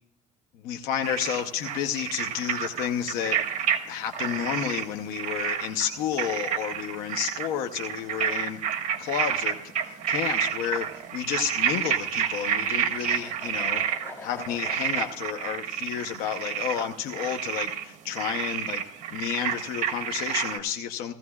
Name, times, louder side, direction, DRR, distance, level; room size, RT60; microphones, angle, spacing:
voice 1, 0.6-3.4 3.9-8.6 9.0-13.8 14.2-18.8 19.1-21.1, left 9 dB, 80° left, 5 dB, 0.8 m, -31 dB
sound 1, 1.0-3.8 4.1-4.9 5.1-14.1 14.4-17.8 18.1-20.6, right 9 dB, 55° right, 1.5 m, -29 dB
sound 2, 10.4-15.1, left 3 dB, 15° left, 2.9 m, -45 dB
16.5 x 15.5 x 2.4 m, 0.77 s
cardioid pair, 125°, 15 cm